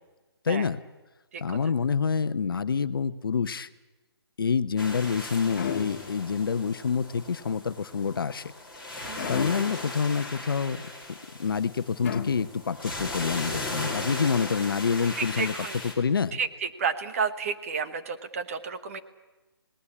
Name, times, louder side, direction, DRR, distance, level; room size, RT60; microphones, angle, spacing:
voice 1, 0.4-0.8 1.4-3.7 4.4-8.5 9.3-10.8 11.1-15.5 16.0-16.4, left 6 dB, 55° left, 12 dB, 1.0 m, -27 dB
sound 1, 4.8-15.9, left 2 dB, 5° right, 3.3 m, -37 dB
sound 2, 5.5-6.4 9.2-9.9 12.0-12.8, left 7 dB, 35° left, 1.7 m, -35 dB
voice 2, 9.0-9.5 15.2-15.8 16.3-19.0, right 6 dB, 35° right, 10 dB, 1.3 m, -31 dB
27.0 x 19.0 x 8.6 m, 1.2 s
hypercardioid pair, 165°, 14 cm